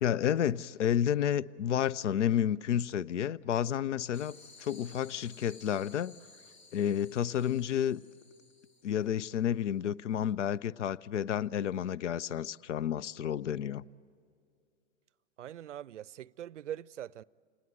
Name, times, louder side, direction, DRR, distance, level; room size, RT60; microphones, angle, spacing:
voice 1, 0.0-6.1 6.7-8.0 8.8-13.8, left 9 dB, 80° left, 0.5 m, -30 dB
sound 1, 4.1-9.2, left 3 dB, 60° left, 2.4 m, -56 dB
voice 2, 15.4-17.2, right 11 dB, 80° right, 0.5 m, -42 dB
29.0 x 20.0 x 7.9 m
figure-of-eight pair, 95°, 35 cm